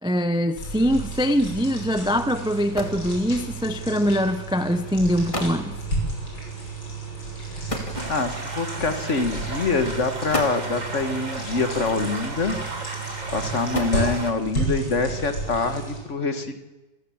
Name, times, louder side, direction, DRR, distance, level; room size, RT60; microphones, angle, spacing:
voice 1, 0.0-5.8, equal, 5° right, 0.5 m, -23 dB
sound 1, 0.6-16.0, right 2 dB, 70° left, 6.9 m, -32 dB
sound 2, 2.2-2.3 2.5-3.1 4.1-4.3 5.0-5.1 5.3-5.7 7.7-8.5 9.5-9.6 10.1-10.8 12.1-12.6 13.4-14.4, left 1 dB, 15° left, 2.4 m, -33 dB
sound 3, 7.9-14.3, right 3 dB, 25° right, 1.8 m, -35 dB
voice 2, 8.1-12.6 13.3-16.6, left 3 dB, 45° left, 1.8 m, -25 dB
28.0 x 15.0 x 7.3 m
omnidirectional pair, 1.9 m